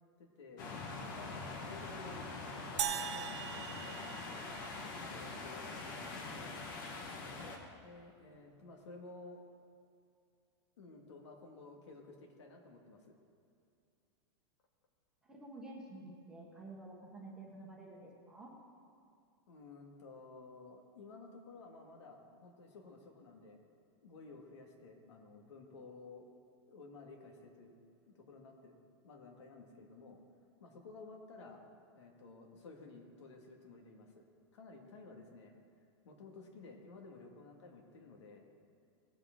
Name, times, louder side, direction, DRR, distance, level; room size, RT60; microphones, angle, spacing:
voice 1, 0.2-4.0 4.8-6.6 7.8-9.4 10.8-13.1 19.5-23.6 24.0-26.3 26.7-27.8 28.1-30.2 30.6-31.6 32.0-34.2 34.5-35.5 36.0-38.5, left 3 dB, 85° left, 1 dB, 2.2 m, -54 dB
sound 1, 0.6-7.6, left 3 dB, 45° left, 1.6 m, -44 dB
sound 2, 2.8-5.2, right 9 dB, 85° right, 0.8 m, -40 dB
voice 2, 15.3-18.5, right 2 dB, 5° right, -3 dB, 1.1 m, -50 dB
18.5 x 7.9 x 3.9 m, 2.5 s
supercardioid pair, 175°, 14 cm